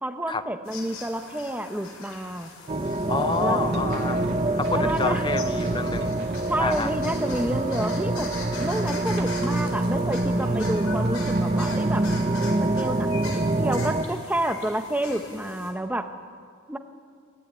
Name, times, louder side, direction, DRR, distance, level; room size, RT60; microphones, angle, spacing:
voice 1, 0.0-2.5 3.4-3.6 4.7-5.3 6.5-8.3 8.6-12.1 12.8-16.1 16.7-16.8, right 1 dB, 5° right, 6 dB, 1.1 m, -29 dB
sound 1, 0.7-15.7, left 4 dB, 75° left, 4.7 m, -42 dB
sound 2, 2.7-14.0, right 2 dB, 30° right, 0.8 m, -25 dB
voice 2, 3.1-4.3 4.5-6.2 6.6-7.0, left 3 dB, 20° left, 11 dB, 0.8 m, -29 dB
sound 3, 3.6-12.2, right 1 dB, 50° right, 2.4 m, -39 dB
23.0 x 16.0 x 9.8 m, 2.1 s
head